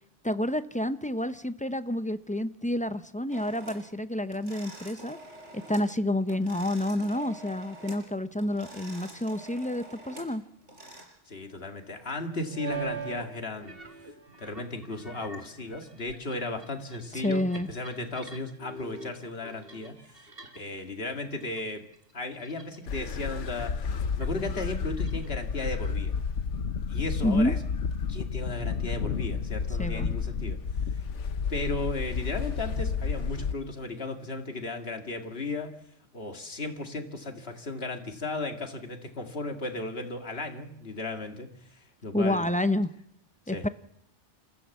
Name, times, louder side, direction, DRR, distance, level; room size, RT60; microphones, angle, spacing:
voice 1, 0.2-5.2 5.5-10.4 17.1-17.7 27.2-27.6 29.8-30.1 42.1-42.9 43.5-43.7, left 1 dB, 10° left, 11 dB, 0.5 m, -29 dB
sound 1, 3.3-3.9 4.3-5.9 6.2-8.1 8.4-11.0, right 1 dB, 75° right, 5.3 m, -47 dB
sound 2, 9.7-9.8 12.5-13.3 13.5-20.8 21.1-21.6 21.9-23.0 23.3-23.6 24.2-25.9, right 6 dB, 50° right, 2.1 m, -43 dB
voice 2, 11.3-13.8 14.4-19.9 20.6-21.8 22.1-23.9 24.2-26.2 26.9-27.6 28.1-30.6 31.5-35.7 36.1-42.5 43.5-43.6, left 2 dB, 55° left, 5 dB, 2.3 m, -35 dB
sound 3, 22.9-33.5, left 6 dB, 75° left, 1.3 m, -31 dB
27.5 x 14.5 x 7.2 m, 0.78 s
omnidirectional pair, 1.2 m